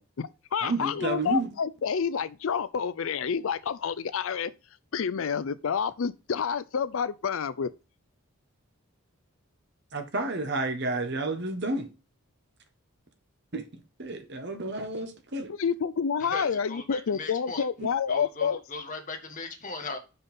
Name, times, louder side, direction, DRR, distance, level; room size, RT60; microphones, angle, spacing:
voice 1, 0.0-4.5 4.9-7.7 15.5-18.6, left 6 dB, 65° left, 0.4 m, -29 dB
voice 2, 0.6-1.5 9.9-11.9 13.5-13.6 14.0-15.5 17.8-17.9, right 2 dB, 50° right, 1.5 m, -30 dB
voice 3, 16.2-17.7 18.1-20.0, left 3 dB, 35° left, 1.6 m, -38 dB
5.6 x 5.6 x 5.4 m
head